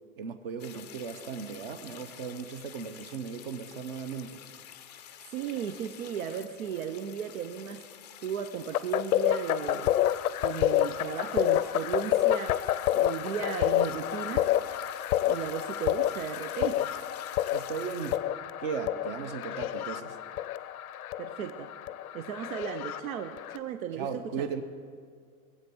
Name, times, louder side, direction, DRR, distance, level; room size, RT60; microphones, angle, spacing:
voice 1, 0.2-4.4 17.5-18.2 18.6-20.2 23.9-24.6, right 6 dB, 40° right, 10 dB, 0.9 m, -37 dB
sound 1, 0.6-18.2, left 10 dB, 30° left, 0.5 m, -49 dB
voice 2, 5.3-7.9 8.2-9.9 10.4-12.6 12.9-14.5 15.2-16.9 21.2-21.7 22.1-24.5, right 8 dB, 70° right, 8 dB, 0.8 m, -35 dB
sound 2, 8.7-23.6, left 12 dB, 90° left, 0.7 m, -29 dB
20.5 x 8.1 x 6.1 m, 2.1 s
supercardioid pair, 180°, 42 cm